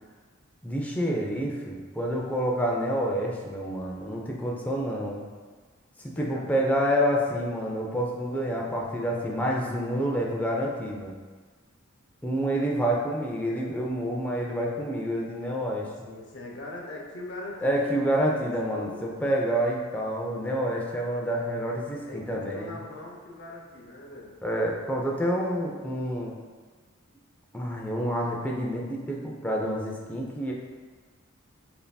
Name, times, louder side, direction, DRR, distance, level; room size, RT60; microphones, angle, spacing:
voice 1, 0.6-5.2 6.0-11.1 12.2-15.9 17.6-22.7 24.4-26.4 27.5-30.5, equal, 5° left, -2 dB, 0.4 m, -28 dB
voice 2, 6.2-6.9 16.0-17.9 18.1-19.0 22.0-24.4, left 2 dB, 55° left, -1 dB, 0.6 m, -41 dB
5.5 x 2.6 x 2.3 m, 1.4 s
head